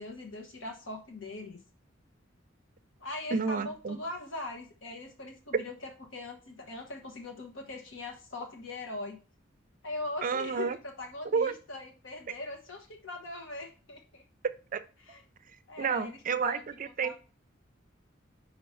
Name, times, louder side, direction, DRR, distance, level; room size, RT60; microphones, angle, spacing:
voice 1, 0.0-1.6 3.0-9.2 9.8-14.2 15.0-15.2 15.7-16.6 17.0-17.1, left 2 dB, 75° left, 3 dB, 1.1 m, -41 dB
voice 2, 3.3-4.0 10.2-10.8 11.3-11.5 14.7-14.8 15.8-17.1, right 5 dB, 45° right, 12 dB, 0.5 m, -30 dB
4.7 x 4.4 x 5.6 m, 0.36 s
head